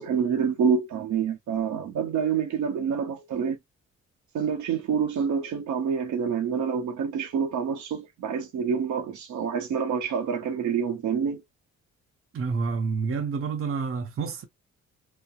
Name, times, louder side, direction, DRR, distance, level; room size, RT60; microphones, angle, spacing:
voice 1, 0.0-3.6 4.3-11.4, right 6 dB, 75° right, 0.9 m, -27 dB
voice 2, 12.3-14.4, right 5 dB, 45° right, 0.8 m, -28 dB
2.8 x 2.2 x 2.3 m
cardioid pair, 90°, 30 cm